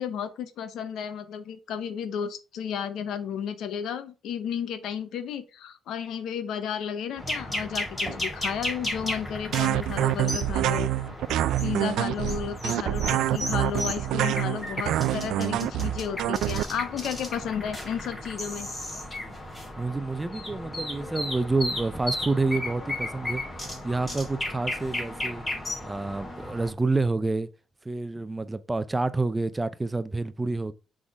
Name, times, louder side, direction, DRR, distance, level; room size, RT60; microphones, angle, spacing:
voice 1, 0.0-10.9 11.6-18.7, left 8 dB, 80° left, 0.8 m, -33 dB
sound 1, 7.2-26.7, left 1 dB, 20° left, 2.7 m, -35 dB
sound 2, 8.1-8.4 9.0-10.4 10.8-12.4 12.7-13.8 14.1-14.2 14.4-15.3 15.6-15.7 16.0-18.0 18.4-19.7, equal, ahead, 3.8 m, -48 dB
sound 3, 9.5-16.6, right 14 dB, 85° right, 0.3 m, -26 dB
voice 2, 19.8-23.4 23.8-25.4 25.8-27.5 27.8-30.7, right 3 dB, 15° right, 0.5 m, -28 dB
6.1 x 3.7 x 4.8 m
cardioid pair, 90°, 0 cm